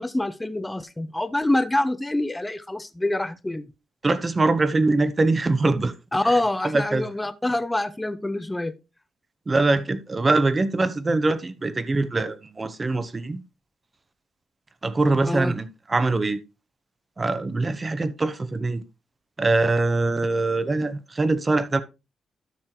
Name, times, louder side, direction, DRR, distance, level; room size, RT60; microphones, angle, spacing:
voice 1, 0.0-3.7 6.1-8.7 15.3-15.5, left 1 dB, 10° left, 0.7 m, -25 dB
voice 2, 4.0-5.9 6.6-7.1 9.5-13.4 14.8-16.4 17.2-18.8 19.4-21.8, right 3 dB, 30° right, 0.9 m, -23 dB
12.5 x 6.3 x 3.0 m
cardioid pair, 90°, 0 cm